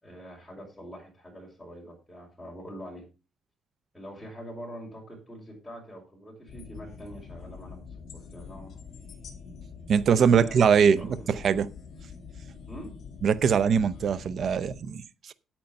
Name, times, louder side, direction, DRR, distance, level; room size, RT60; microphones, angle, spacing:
voice 1, 0.0-3.1 3.9-8.8 10.3-11.3 12.7-12.9, equal, 5° left, 5.0 m, -44 dB
sound 1, 6.5-14.8, left 5 dB, 50° left, 3.3 m, -45 dB
voice 2, 9.9-11.7 13.2-15.3, right 6 dB, 50° right, 0.7 m, -22 dB
9.1 x 8.9 x 5.1 m
cardioid pair, 140°, 0 cm